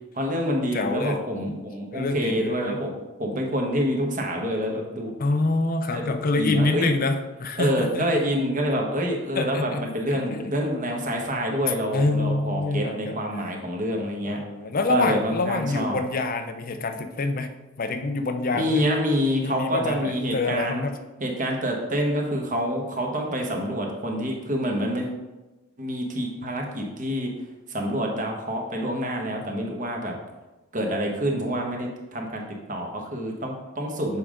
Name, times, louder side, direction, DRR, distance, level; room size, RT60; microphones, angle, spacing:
voice 1, 0.1-2.9 3.2-5.1 5.9-6.9 7.6-14.4 14.9-16.0 18.5-20.8 21.2-25.1 25.8-27.3 27.7-30.1 30.7-32.4 32.7-34.2, equal, 40° right, 1 dB, 1.1 m, -27 dB
voice 2, 0.7-1.2 1.5-1.6 1.9-2.8 5.2-8.1 9.4-9.9 10.1-10.6 11.9-13.2 14.3-17.5 17.8-18.9 19.3-21.0, left 2 dB, 40° left, 7 dB, 0.5 m, -26 dB
7.0 x 5.0 x 3.7 m, 1.1 s
head